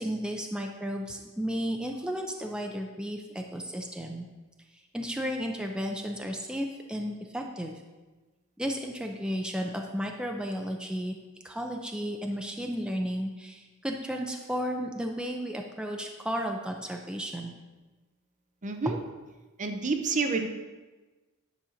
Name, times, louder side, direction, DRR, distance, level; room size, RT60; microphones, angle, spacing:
voice 1, 0.0-4.3 4.9-7.7 8.6-11.2 11.4-17.5 18.9-19.0, equal, 5° right, 2 dB, 0.6 m, -33 dB
voice 2, 18.6-19.0 19.6-20.5, right 4 dB, 35° right, 6 dB, 0.7 m, -28 dB
10.0 x 4.3 x 6.4 m, 1.2 s
head